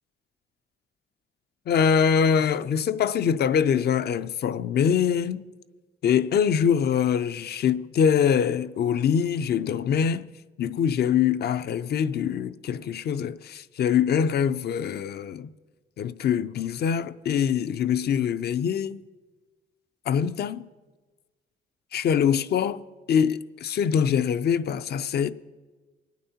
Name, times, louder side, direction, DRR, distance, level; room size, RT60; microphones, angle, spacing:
voice 1, 1.7-5.4 6.0-10.3 10.6-15.5 16.0-19.0 20.1-20.6 21.9-25.3, left 7 dB, 55° left, 0.5 m, -24 dB
25.0 x 9.1 x 2.8 m
cardioid pair, 90°, 20 cm